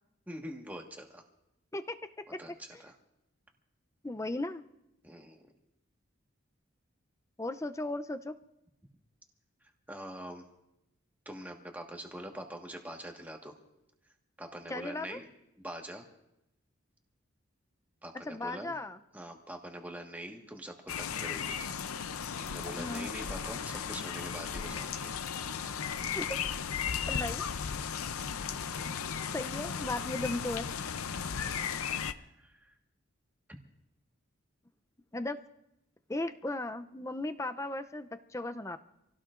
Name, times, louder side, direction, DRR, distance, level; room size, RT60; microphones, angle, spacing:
voice 1, 0.3-1.2 2.4-2.9 5.0-5.4 9.9-10.5 11.2-13.5 14.4-15.3 15.6-16.0 18.0-18.7 19.1-21.6 22.1-25.1 31.3-31.7 32.4-32.7, right 1 dB, 10° right, 1 dB, 1.5 m, -44 dB
voice 2, 4.0-4.6 7.4-8.3 14.7-15.2 18.3-19.0 22.8-23.1 26.1-26.3 27.1-27.4 29.3-30.7 35.1-35.4 36.1-38.8, left 2 dB, 15° left, 9 dB, 0.5 m, -36 dB
sound 1, 20.9-32.1, left 7 dB, 90° left, 0.6 m, -36 dB
27.5 x 17.0 x 2.5 m, 0.87 s
head